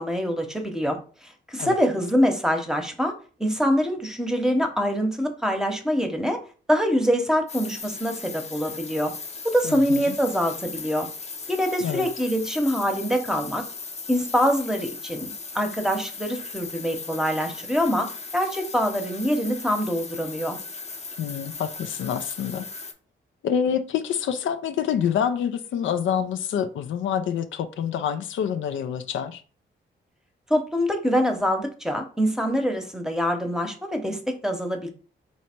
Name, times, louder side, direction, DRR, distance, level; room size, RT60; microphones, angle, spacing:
voice 1, 0.0-3.1 3.4-6.4 6.7-9.1 9.4-11.1 11.5-13.6 14.1-20.6 30.5-34.9, equal, 5° right, 0.9 m, -24 dB
sound 1, 7.5-22.9, left 4 dB, 35° left, 0.8 m, -38 dB
voice 2, 9.6-10.2 11.8-12.1 21.2-22.6 23.4-29.4, left 8 dB, 75° left, 0.5 m, -27 dB
3.2 x 2.8 x 4.4 m
cardioid pair, 70°, 20 cm